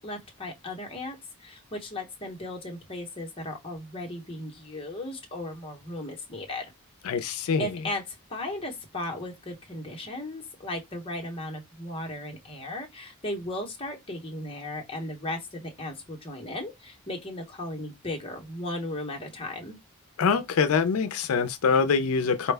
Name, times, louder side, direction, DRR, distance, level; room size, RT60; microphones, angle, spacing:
voice 1, 0.0-6.7 7.2-19.8, left 1 dB, 25° left, 0.8 m, -36 dB
voice 2, 7.0-7.8 20.2-22.5, left 5 dB, 75° left, 0.4 m, -24 dB
4.2 x 2.1 x 3.3 m
head